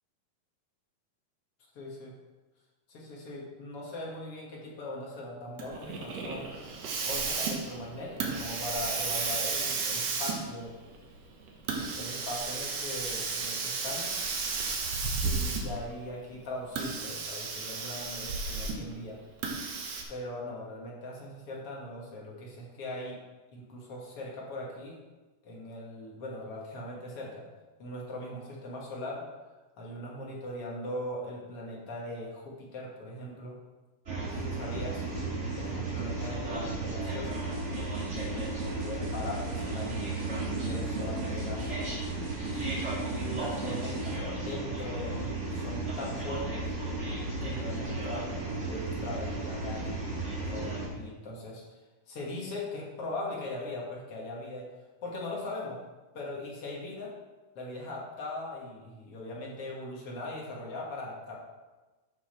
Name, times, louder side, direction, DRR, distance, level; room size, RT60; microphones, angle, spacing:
voice 1, 1.8-2.1 2.9-6.6 7.0-10.7 11.9-14.1 15.2-19.2 20.1-23.2 23.5-25.0 25.4-27.5 27.8-29.2 29.8-33.6 34.2-37.4 38.2-41.7 42.5-42.8 43.2-46.7 47.4-51.8 52.1-54.7 55.0-55.8 56.1-57.1 57.6-61.4, left 1 dB, 50° left, -3 dB, 1.9 m, -40 dB
Hiss, 5.6-15.9 16.6-18.9 19.4-20.0, right 4 dB, 85° right, 1.4 m, -33 dB
sound 1, 34.1-50.9, right 2 dB, 30° right, 1.2 m, -34 dB
sound 2, 37.3-44.2, right 6 dB, 65° right, 2.3 m, -41 dB
11.0 x 6.1 x 4.3 m, 1.2 s
omnidirectional pair, 4.6 m